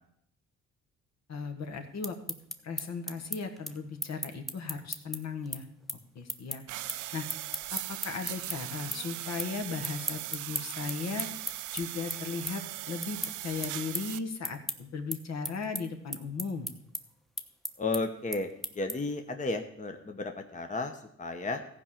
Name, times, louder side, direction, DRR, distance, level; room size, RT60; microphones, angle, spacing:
voice 1, 1.3-2.1 2.6-5.6 6.1-6.6 7.1-7.2 7.7-11.3 11.7-16.7, left 5 dB, 60° left, 6 dB, 1.6 m, -37 dB
sound 1, 1.8-8.6 8.9-9.5 9.8-19.2, equal, ahead, 0.9 m, -37 dB
sound 2, 6.7-14.2, right 14 dB, 80° right, 0.6 m, -39 dB
voice 2, 17.8-20.9 21.2-21.6, left 3 dB, 25° left, 5 dB, 1.0 m, -33 dB
14.5 x 5.1 x 7.4 m, 0.71 s
cardioid pair, 90°, 30 cm